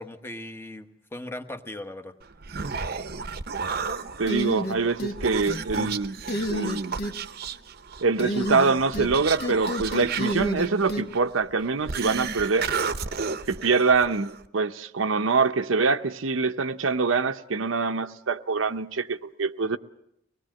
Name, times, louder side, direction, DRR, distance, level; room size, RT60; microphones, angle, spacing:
voice 1, 0.0-2.1, left 1 dB, 10° left, 7 dB, 1.1 m, -38 dB
Human voice, 2.2-14.5, right 5 dB, 50° right, 0.8 m, -33 dB
voice 2, 4.2-6.2 6.5-6.9 8.0-12.7 13.5-19.8, right 4 dB, 85° right, 8 dB, 0.8 m, -24 dB
sound 1, 4.3-5.2 5.5-5.9 6.3-7.1 8.2-9.1 9.4-11.0, equal, 50° left, 1.5 m, -29 dB
24.5 x 19.5 x 7.6 m, 0.78 s
head